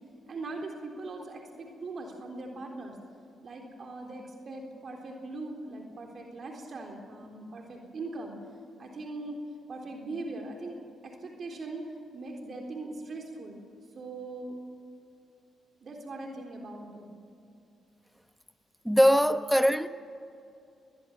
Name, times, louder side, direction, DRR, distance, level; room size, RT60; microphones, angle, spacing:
voice 1, 0.3-3.0 3.4-8.4 8.8-9.4 9.7-10.8 11.0-11.8 12.1-13.6 13.9-14.6 15.8-17.2, right 2 dB, 55° right, 3.7 m, -40 dB
voice 2, 18.8-19.9, equal, ahead, 1.2 m, -21 dB
22.0 x 20.0 x 7.3 m
hypercardioid pair, 45°, 0 cm